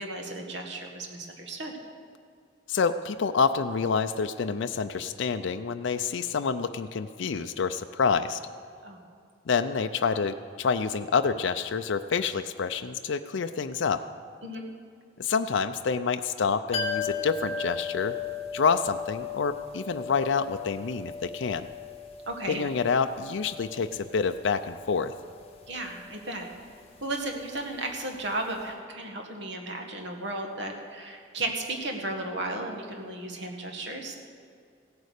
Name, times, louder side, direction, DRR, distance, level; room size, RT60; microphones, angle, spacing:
voice 1, 0.0-1.7 8.8-9.0 14.4-14.6 22.3-22.6 25.7-26.5 27.0-34.1, right 2 dB, 60° right, 2 dB, 1.8 m, -34 dB
voice 2, 2.7-8.4 9.5-14.0 15.2-18.2 18.5-21.7 22.5-25.1, left 5 dB, 65° left, 8 dB, 0.4 m, -27 dB
sound 1, 16.7-28.3 28.6-28.7, left 5 dB, 30° left, 1.5 m, -37 dB
15.5 x 9.4 x 6.6 m, 2.3 s
head